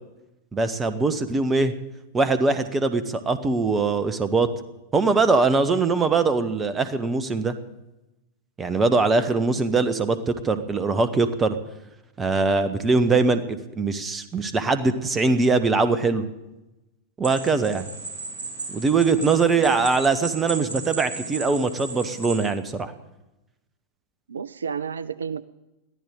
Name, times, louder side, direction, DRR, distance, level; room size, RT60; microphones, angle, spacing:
voice 1, 0.5-1.7 2.1-4.5 4.9-7.5 8.6-11.6 12.2-16.2 17.2-17.8 18.7-22.9, right 4 dB, 15° right, 13 dB, 1.3 m, -22 dB
sound 1, 17.2-22.5, right 3 dB, 55° right, 6.8 m, -35 dB
voice 2, 24.3-25.5, right 6 dB, 70° right, 18 dB, 0.4 m, -31 dB
22.0 x 14.0 x 3.9 m, 0.98 s
figure-of-eight pair, 90°, 0 cm